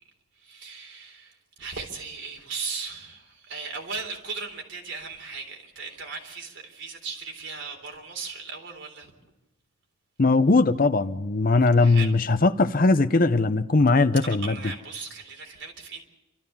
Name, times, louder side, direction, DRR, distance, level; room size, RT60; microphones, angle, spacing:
voice 1, 0.3-9.1 11.8-12.1 14.2-16.0, right 4 dB, 65° right, 3.7 m, -37 dB
voice 2, 10.2-14.6, left 3 dB, 45° left, 0.6 m, -20 dB
28.5 x 13.5 x 6.9 m
head